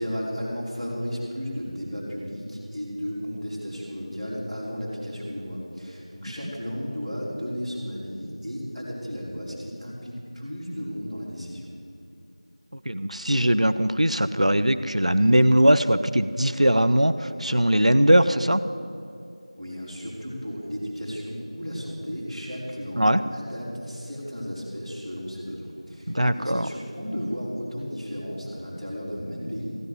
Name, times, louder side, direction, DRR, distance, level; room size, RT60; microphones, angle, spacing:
voice 1, 0.0-11.7 19.6-29.7, equal, ahead, -17 dB, 1.1 m, -34 dB
voice 2, 12.9-18.6 23.0-23.2 26.1-26.7, equal, 85° right, 13 dB, 0.7 m, -20 dB
15.5 x 10.0 x 6.7 m, 2.6 s
figure-of-eight pair, 175°, 3 cm